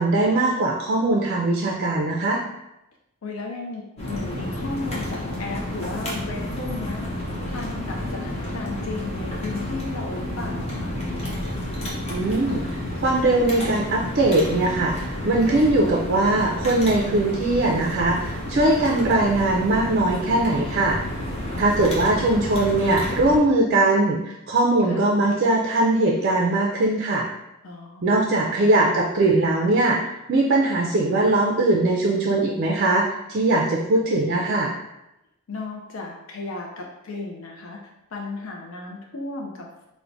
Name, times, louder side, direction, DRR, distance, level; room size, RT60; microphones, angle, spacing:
voice 1, 0.0-2.4 12.1-21.0 21.5-27.3 28.0-30.0 30.3-34.7, right 2 dB, 45° right, -1 dB, 0.4 m, -21 dB
voice 2, 3.2-7.1 7.5-11.0 24.8-25.1 27.6-28.3 35.5-37.8 38.1-39.9, left 3 dB, 65° left, -1 dB, 0.5 m, -34 dB
sound 1, 4.0-23.4, left 1 dB, 30° left, 0.7 m, -30 dB
4.4 x 2.1 x 2.5 m, 0.88 s
head